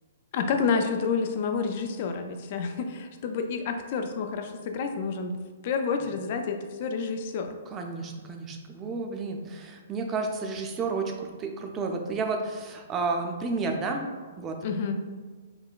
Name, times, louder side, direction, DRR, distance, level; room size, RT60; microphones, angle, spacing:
voice 1, 0.3-5.3 5.6-7.6 14.6-15.0, left 5 dB, 50° left, 6 dB, 0.3 m, -29 dB
voice 2, 7.7-14.1 14.4-14.6, right 4 dB, 25° right, 3 dB, 0.4 m, -31 dB
3.8 x 2.2 x 2.2 m, 1.4 s
hypercardioid pair, 125°, 0 cm